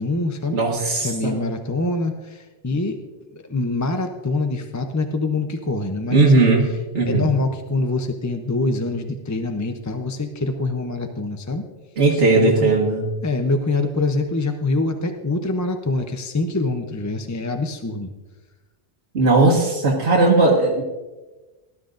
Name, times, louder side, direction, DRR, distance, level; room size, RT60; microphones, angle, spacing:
voice 1, 0.0-0.6 1.0-3.0 3.3-6.5 7.1-11.6 12.1-12.7 13.2-18.1, left 2 dB, 20° left, 5 dB, 0.6 m, -25 dB
voice 2, 0.5-1.4 6.1-6.7 6.9-7.3 12.0-13.1 19.1-20.8, right 3 dB, 85° right, -3 dB, 1.8 m, -17 dB
18.0 x 12.5 x 2.6 m, 1.2 s
omnidirectional pair, 1.1 m